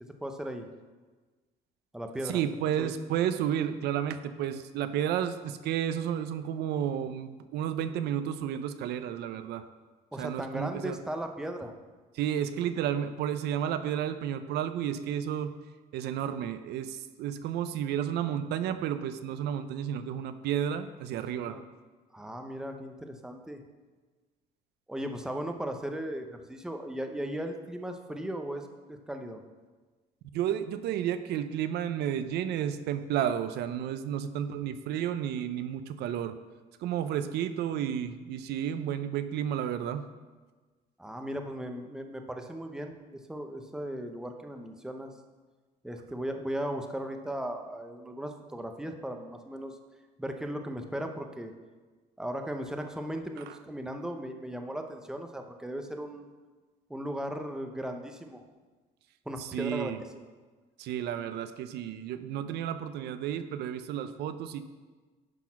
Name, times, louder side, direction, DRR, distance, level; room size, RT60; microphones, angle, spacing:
voice 1, 0.2-0.7 1.9-2.4 2.8-2.9 10.1-11.7 21.4-21.6 22.1-23.6 24.9-29.4 41.0-45.1 45.8-49.8 50.2-51.5 52.2-56.3 56.9-58.4 59.3-60.3, right 1 dB, 5° right, 5 dB, 0.7 m, -37 dB
voice 2, 2.2-9.6 10.2-11.0 12.1-15.5 15.9-21.6 30.3-36.3 36.8-40.0 53.5-53.6 59.4-60.0 60.8-64.7, right 9 dB, 75° right, 11 dB, 0.5 m, -32 dB
10.5 x 4.0 x 5.8 m, 1.3 s
cardioid pair, 110°, 17 cm